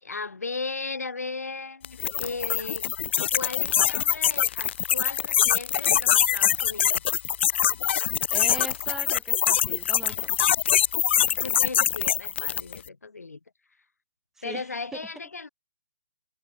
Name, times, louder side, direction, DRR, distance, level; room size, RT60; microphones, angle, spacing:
voice 1, 0.0-2.9 3.3-7.0 11.2-13.4 14.4-15.5, left 4 dB, 85° left, 3.4 m, -36 dB
sound 1, 1.8-12.8, left 10 dB, 45° left, 1.9 m, -24 dB
voice 2, 8.3-10.5 14.4-14.7 14.9-15.0, right 3 dB, 5° right, 5.4 m, -40 dB
hypercardioid pair, 145°, 8 cm